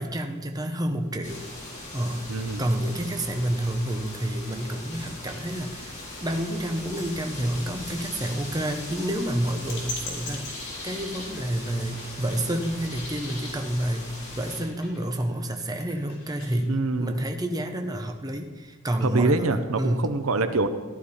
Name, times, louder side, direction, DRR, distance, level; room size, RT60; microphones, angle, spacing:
voice 1, 0.0-1.5 1.9-2.2 2.6-20.1, right 1 dB, 20° right, 5 dB, 0.9 m, -29 dB
sound 1, 1.2-14.6, left 2 dB, 35° left, 3.7 m, -39 dB
voice 2, 2.3-2.6 16.7-17.1 19.0-20.7, right 3 dB, 75° right, 10 dB, 0.8 m, -25 dB
sound 2, 4.2-16.6, left 2 dB, 55° left, 3.7 m, -44 dB
15.0 x 11.0 x 4.2 m, 1.3 s
head